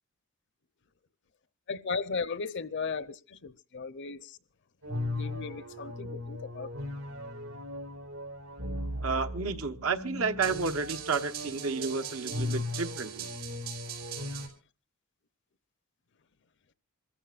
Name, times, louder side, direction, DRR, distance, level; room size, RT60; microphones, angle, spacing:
voice 1, 1.7-4.4 5.1-6.7, left 4 dB, 55° left, 0.7 m, -36 dB
sound 1, 4.8-14.5, equal, 90° right, 5.0 m, -37 dB
voice 2, 9.0-13.3, right 4 dB, 70° right, 1.0 m, -31 dB
27.0 x 14.5 x 2.4 m
head